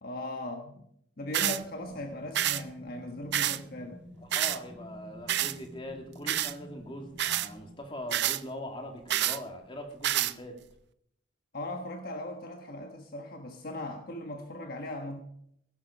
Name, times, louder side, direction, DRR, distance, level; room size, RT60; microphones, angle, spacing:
voice 1, 0.0-0.8 1.2-4.0 11.5-15.2, left 1 dB, 50° left, 4 dB, 1.3 m, -38 dB
sound 1, 1.2-8.0, equal, 10° left, 6.2 m, -50 dB
sound 2, 1.3-1.6 2.3-2.6 3.3-3.6 4.3-4.6 5.3-5.5 6.3-6.5 7.2-7.5 8.1-8.4 9.1-9.4 10.0-10.3, right 12 dB, 60° right, 0.5 m, -28 dB
voice 2, 4.2-10.6, left 1 dB, 25° left, 3 dB, 2.3 m, -41 dB
16.5 x 12.0 x 4.3 m, 0.71 s
head